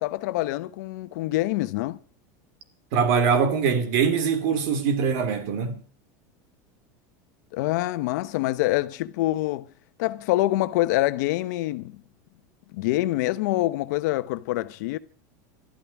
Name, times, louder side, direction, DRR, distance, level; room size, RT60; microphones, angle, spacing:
voice 1, 0.0-2.0 7.5-9.7 10.0-12.0 12.7-15.0, left 17 dB, 70° left, 1.0 m, -25 dB
voice 2, 2.9-5.8, right 6 dB, 65° right, 3.2 m, -23 dB
13.0 x 12.0 x 7.2 m
supercardioid pair, 130°, 10 cm